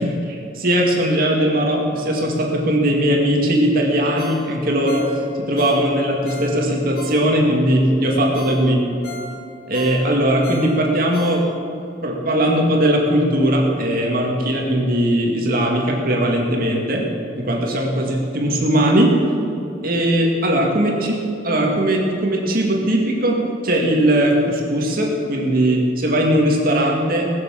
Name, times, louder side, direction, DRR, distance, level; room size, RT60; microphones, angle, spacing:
voice 1, 0.0-8.8 9.7-11.5 12.0-17.0 17.4-19.1 19.8-21.1 21.4-23.4 23.6-27.3, right 1 dB, 50° right, -1 dB, 2.3 m, -19 dB
Ringtone, 4.2-7.6 8.0-8.1 8.3-11.8 12.2-12.3, equal, 50° left, 2.3 m, -36 dB
19.5 x 7.2 x 7.5 m, 2.6 s
head